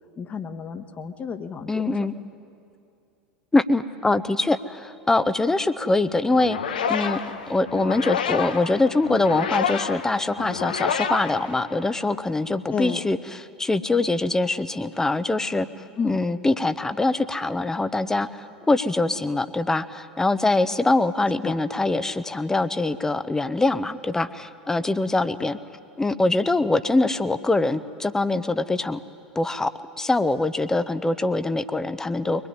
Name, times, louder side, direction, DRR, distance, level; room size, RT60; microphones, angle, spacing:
voice 1, 0.2-2.0 12.7-13.0 16.0-16.2 21.4-21.6 25.4-25.5, left 6 dB, 30° left, 9 dB, 1.6 m, -31 dB
voice 2, 1.7-2.1 3.5-7.2 7.5-13.2 13.6-15.7 16.0-25.6 26.0-29.0 29.3-32.5, left 2 dB, 10° left, 13 dB, 0.9 m, -23 dB
sound 1, 6.3-12.1, left 7 dB, 70° left, 1.3 m, -29 dB
23.5 x 20.0 x 9.8 m, 2.5 s
figure-of-eight pair, 80°, 5 cm